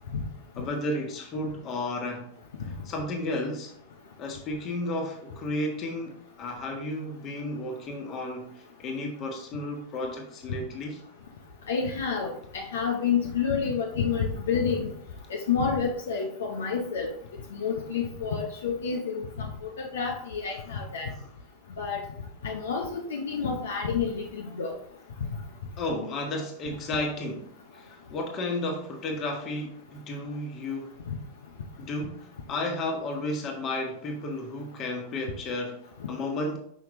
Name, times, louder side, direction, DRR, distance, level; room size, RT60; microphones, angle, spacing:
voice 1, 0.6-2.3 2.8-3.7 4.2-11.0 21.2-21.3 25.8-31.0 31.8-36.6, left 1 dB, 30° left, 1.5 m, -33 dB
voice 2, 11.7-14.9 15.3-17.1 17.5-19.5 19.8-21.1 21.8-22.0 22.4-24.7 31.1-31.2, left 6 dB, 65° left, 0.9 m, -29 dB
6.1 x 5.6 x 3.1 m
figure-of-eight pair, 90°, 0 cm